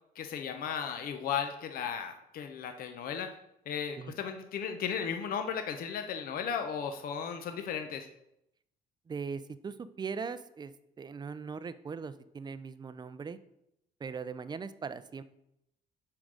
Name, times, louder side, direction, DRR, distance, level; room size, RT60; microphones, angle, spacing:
voice 1, 0.2-3.3 3.7-8.1, left 7 dB, 60° left, 6 dB, 0.8 m, -35 dB
voice 2, 9.1-13.4 14.0-15.2, right 5 dB, 25° right, 13 dB, 0.5 m, -40 dB
8.8 x 3.8 x 6.4 m, 0.81 s
cardioid pair, 110°, 17 cm